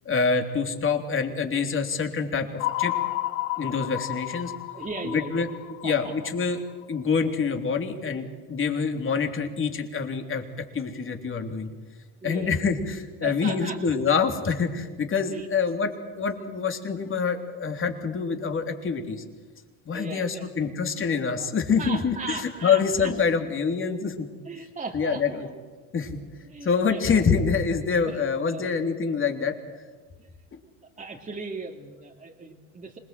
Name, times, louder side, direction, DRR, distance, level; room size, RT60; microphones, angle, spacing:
voice 1, 0.1-2.5 2.8-2.9 3.6-4.5 5.0-5.5 5.8-6.6 6.9-10.4 10.7-11.7 12.2-19.2 19.9-24.3 24.9-25.5 25.9-26.2 26.6-29.5, left 5 dB, 30° left, 5 dB, 3.4 m, -26 dB
sound 1, 2.6-6.8, left 15 dB, 80° left, 1.5 m, -31 dB
voice 2, 4.7-5.5 5.8-6.1 12.2-12.5 13.2-13.8 15.3-15.5 19.9-20.5 21.4-21.5 21.8-23.1 24.4-25.5 26.4-27.4 28.0-28.2 28.5-28.8 30.2-30.3 31.0-33.0, right 3 dB, 20° right, 0 dB, 2.4 m, -37 dB
26.5 x 20.5 x 7.8 m, 1.3 s
supercardioid pair, 100°, 39 cm